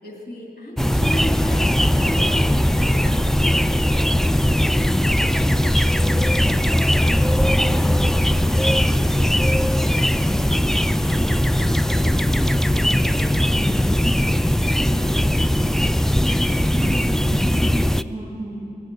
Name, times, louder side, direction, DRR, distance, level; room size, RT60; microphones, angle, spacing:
voice 1, 0.0-3.8 4.6-6.8 7.5-10.2 11.1-14.4 14.7-15.2, equal, 85° left, -1 dB, 2.8 m, -38 dB
sound 1, 0.8-18.0, left 1 dB, 5° left, 0.3 m, -19 dB
voice 2, 16.7-18.6, right 2 dB, 25° right, -4 dB, 3.3 m, -32 dB
20.5 x 8.4 x 6.8 m, 2.7 s
wide cardioid pair, 70°, 16 cm